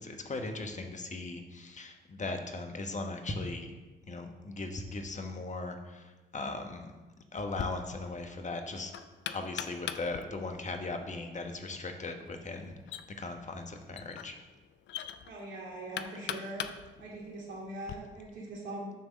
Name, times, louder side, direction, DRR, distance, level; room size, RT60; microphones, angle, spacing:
voice 1, 0.0-3.7 4.1-6.9 7.3-8.9 9.3-12.7 13.2-14.4, left 3 dB, 40° left, 5 dB, 1.1 m, -38 dB
Knock, 7.4-18.0, left 9 dB, 65° left, 0.4 m, -43 dB
voice 2, 15.2-18.9, right 1 dB, 70° right, -3 dB, 2.3 m, -42 dB
7.0 x 3.5 x 6.2 m, 1.2 s
hypercardioid pair, 50°, 20 cm